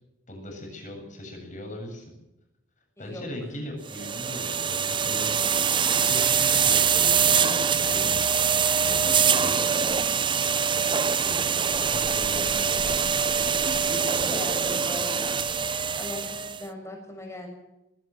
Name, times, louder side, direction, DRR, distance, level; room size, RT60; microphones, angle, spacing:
voice 1, 0.3-2.1 3.0-5.3 5.6-5.8 6.1-8.1 8.8-9.6 11.2-11.4 11.7-12.9 13.9-14.4, left 1 dB, 40° left, 3 dB, 7.9 m, -39 dB
voice 2, 3.0-3.3 9.0-10.1 13.6-15.6 15.9-17.5, left 1 dB, 15° left, 3 dB, 6.7 m, -39 dB
sound 1, 3.9-16.6, right 7 dB, 25° right, 0.7 m, -24 dB
20.0 x 17.5 x 7.8 m, 0.92 s
head